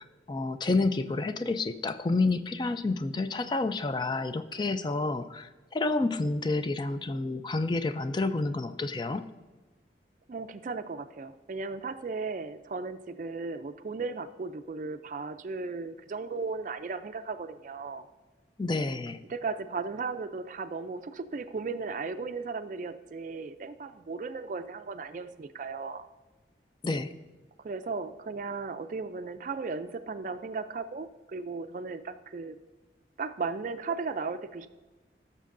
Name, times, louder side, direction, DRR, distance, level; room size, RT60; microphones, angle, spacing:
voice 1, 0.0-9.2 18.6-19.2 26.8-27.1, left 3 dB, 25° left, 10 dB, 0.4 m, -29 dB
voice 2, 10.3-18.1 19.3-26.0 27.6-32.6 33.2-34.7, right 4 dB, 45° right, 11 dB, 0.4 m, -36 dB
15.5 x 6.6 x 2.5 m, 1.2 s
head